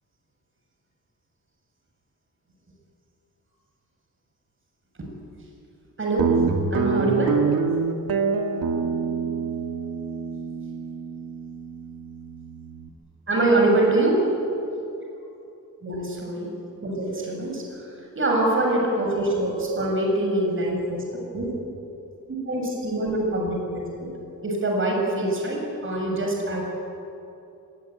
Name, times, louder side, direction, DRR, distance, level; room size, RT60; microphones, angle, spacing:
voice 1, 6.0-6.3 6.7-7.4 13.3-14.3 15.8-16.5 16.8-21.5 22.5-24.1 24.4-26.7, right 2 dB, 35° right, 0 dB, 7.0 m, -24 dB
Guitar, 6.2-12.9, right 5 dB, 85° right, 2.4 m, -26 dB
25.0 x 21.0 x 9.4 m, 2.8 s
wide cardioid pair, 135°, 34 cm